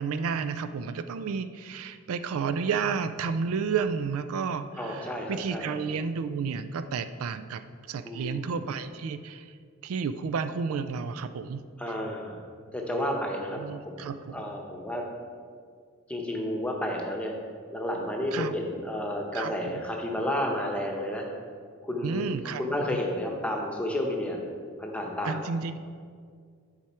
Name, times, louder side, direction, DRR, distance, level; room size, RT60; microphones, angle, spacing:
voice 1, 0.0-9.5 9.8-11.6 13.6-14.4 18.3-18.5 19.3-19.7 22.0-22.6 25.2-25.8, right 5 dB, 70° right, 11 dB, 0.3 m, -31 dB
voice 2, 4.8-5.7 8.0-8.5 11.8-12.4 12.7-13.6 13.8-15.0 16.1-17.3 17.7-21.3 21.8-22.3 22.6-24.4 24.8-25.4, left 1 dB, 5° left, 0 dB, 0.9 m, -31 dB
10.5 x 4.8 x 4.3 m, 2.1 s
head